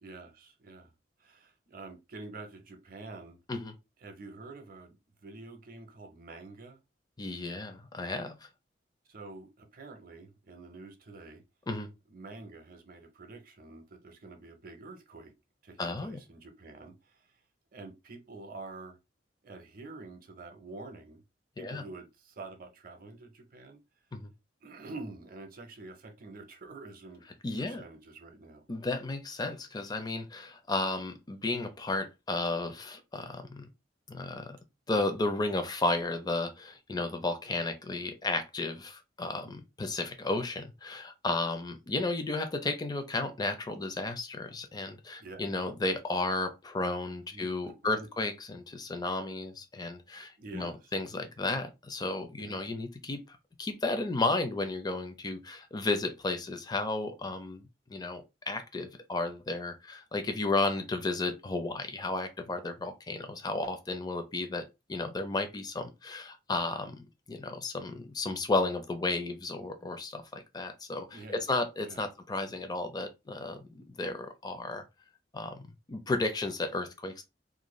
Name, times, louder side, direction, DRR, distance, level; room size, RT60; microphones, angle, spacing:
voice 1, 0.0-0.9 1.2-3.4 4.0-5.0 5.2-6.8 9.1-11.4 12.1-15.3 15.6-17.4 17.7-19.0 19.4-21.2 21.6-23.8 24.6-27.2 27.6-28.7 45.2-45.4 47.3-48.1 50.4-51.0 52.4-52.6 71.1-71.4 71.9-72.0, right 3 dB, 50° right, 0.6 m, -47 dB
voice 2, 7.2-8.4 11.7-11.9 15.8-16.2 21.6-21.8 24.1-24.3 27.4-27.8 28.7-33.7 34.1-34.6 34.9-57.6 57.9-74.8 75.3-77.2, left 2 dB, 20° left, 0.4 m, -33 dB
2.5 x 2.2 x 3.0 m
head